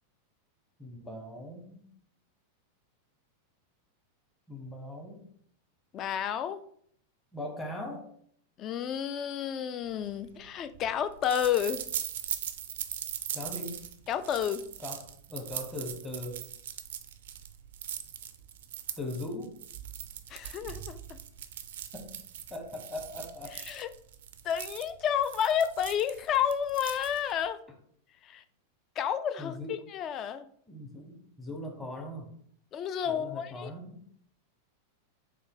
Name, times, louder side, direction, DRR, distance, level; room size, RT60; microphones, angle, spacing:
voice 1, 0.8-1.8 4.5-5.2 7.3-8.1 13.3-13.8 14.8-15.0 15.3-16.4 19.0-19.6 21.9-22.1 22.5-23.6 29.4-29.7 30.7-32.3 33.1-34.0, left 1 dB, 10° left, 1 dB, 1.0 m, -40 dB
voice 2, 5.9-6.6 8.6-11.8 14.1-14.7 20.3-21.2 23.7-23.9 24.4-27.6 28.2-28.4 29.0-30.5 32.7-33.7, left 9 dB, 30° left, 11 dB, 0.3 m, -31 dB
sound 1, 10.0-27.5, right 10 dB, 55° right, 0.3 m, -41 dB
3.8 x 2.7 x 3.7 m, 0.63 s
figure-of-eight pair, 90°, 0 cm